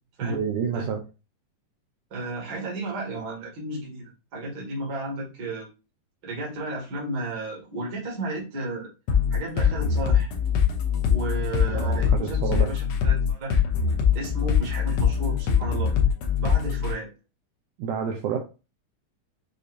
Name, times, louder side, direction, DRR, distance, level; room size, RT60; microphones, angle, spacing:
voice 1, 0.2-1.0 11.7-12.7 17.8-18.4, right 7 dB, 80° right, 1 dB, 1.9 m, -29 dB
voice 2, 2.1-5.7 6.2-8.9 9.3-10.3 11.1-13.6 14.1-15.9 16.4-17.1, right 2 dB, 40° right, -3 dB, 1.6 m, -33 dB
sound 1, 9.1-16.9, left 7 dB, 85° left, 1.5 m, -23 dB
6.5 x 2.7 x 2.6 m, 0.31 s
omnidirectional pair, 4.1 m